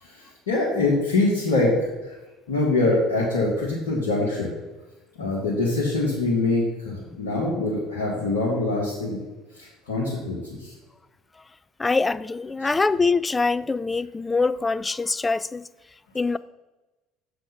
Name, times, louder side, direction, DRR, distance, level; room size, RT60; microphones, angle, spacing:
voice 1, 0.0-2.1 2.5-4.5 5.1-9.2 9.6-10.7 12.6-12.7, left 2 dB, 75° left, 1.6 m, -24 dB
voice 2, 11.8-15.6 16.1-16.4, left 3 dB, 20° left, 0.3 m, -24 dB
7.1 x 6.1 x 5.6 m
figure-of-eight pair, 65°, 0 cm